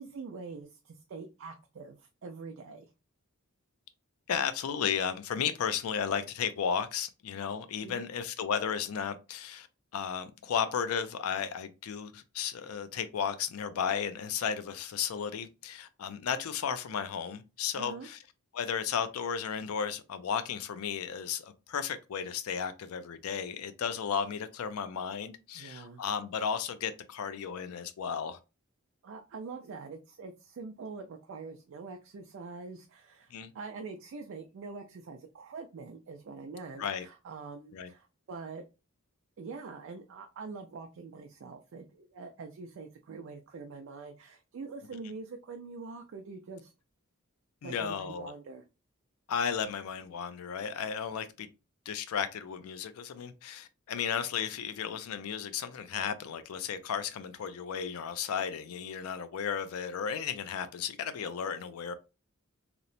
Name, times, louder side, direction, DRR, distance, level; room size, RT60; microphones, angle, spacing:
voice 1, 0.0-2.9 7.8-8.0 17.7-18.1 25.5-26.0 29.0-38.6 39.4-46.7 47.6-48.6, right 4 dB, 60° right, 0.4 m, -44 dB
voice 2, 4.3-9.7 9.9-18.2 18.5-28.4 33.3-33.5 36.8-37.1 37.7-37.9 47.6-48.3 49.3-51.5 51.9-61.9, left 7 dB, 80° left, 0.4 m, -34 dB
2.9 x 2.0 x 2.5 m
head